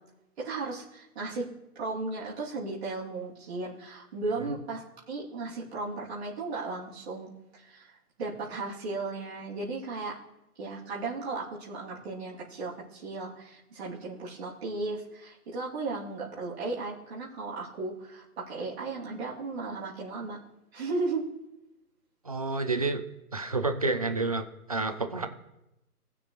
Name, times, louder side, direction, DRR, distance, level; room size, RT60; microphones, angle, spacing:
voice 1, 0.4-1.5 1.7-7.9 8.2-10.2 10.6-20.4 20.7-21.3, right 3 dB, 45° right, -7 dB, 3.1 m, -35 dB
voice 2, 22.2-23.0 23.3-25.3, right 3 dB, 25° right, 8 dB, 0.5 m, -29 dB
19.5 x 6.8 x 3.2 m, 0.92 s
hypercardioid pair, 155°, 46 cm